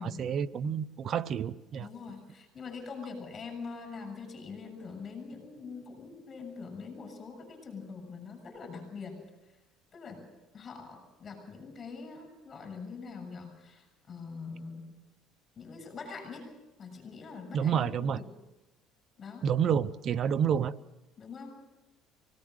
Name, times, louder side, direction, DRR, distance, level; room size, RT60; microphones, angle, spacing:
voice 1, 0.0-1.9 17.5-18.2 19.4-20.7, right 8 dB, 45° right, 15 dB, 0.8 m, -29 dB
voice 2, 1.8-9.2 9.9-10.2 10.5-14.9 15.6-16.5 16.8-18.3 19.2-19.5 20.5-20.7 21.2-21.5, left 4 dB, 30° left, 6 dB, 7.2 m, -43 dB
26.0 x 18.5 x 6.5 m, 1.0 s
cardioid pair, 125°, 0 cm